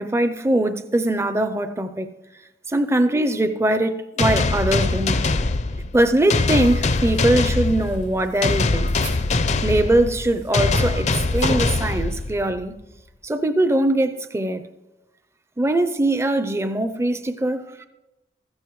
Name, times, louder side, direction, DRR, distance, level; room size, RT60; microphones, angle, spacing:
voice 1, 0.0-2.1 2.7-5.2 5.9-8.9 9.6-12.7 13.2-14.6 15.6-17.9, right 1 dB, 15° right, 0.5 m, -21 dB
sound 1, 4.2-12.6, left 3 dB, 40° left, 0.5 m, -22 dB
sound 2, 6.5-11.8, right 2 dB, 90° right, 3.0 m, -37 dB
15.0 x 14.0 x 3.1 m
head